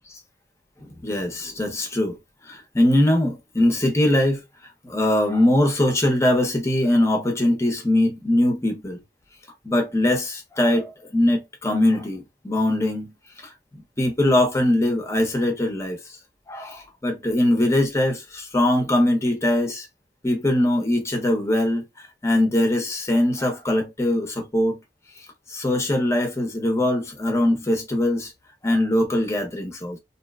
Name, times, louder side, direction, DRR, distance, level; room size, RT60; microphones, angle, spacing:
voice 1, 0.8-2.2 2.5-4.4 4.8-9.0 9.6-13.1 13.4-16.0 16.5-19.9 20.2-21.8 22.2-24.8 25.5-28.3 28.6-30.0, left 1 dB, 15° left, 0.7 m, -22 dB
2.7 x 2.1 x 2.2 m
head